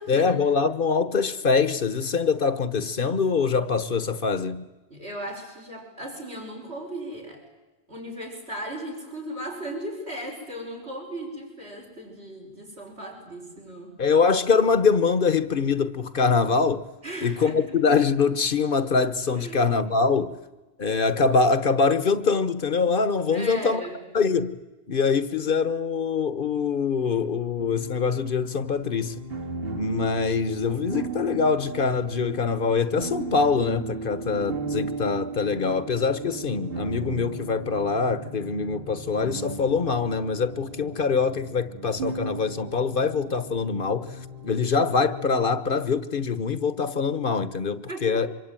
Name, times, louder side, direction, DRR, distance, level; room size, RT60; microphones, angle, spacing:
voice 1, 0.1-4.7 14.0-16.9 17.2-20.4 20.8-23.8 24.1-24.6 24.9-29.2 29.7-44.1 44.4-48.3, left 5 dB, 55° left, 1.3 m, -24 dB
voice 2, 4.9-7.4 7.9-14.0 17.0-17.6 19.4-19.7 23.3-24.0 47.9-48.3, right 1 dB, 80° right, 6.1 m, -37 dB
sound 1, 27.6-45.5, right 4 dB, 65° right, 2.2 m, -36 dB
25.5 x 23.5 x 9.0 m
omnidirectional pair, 1.1 m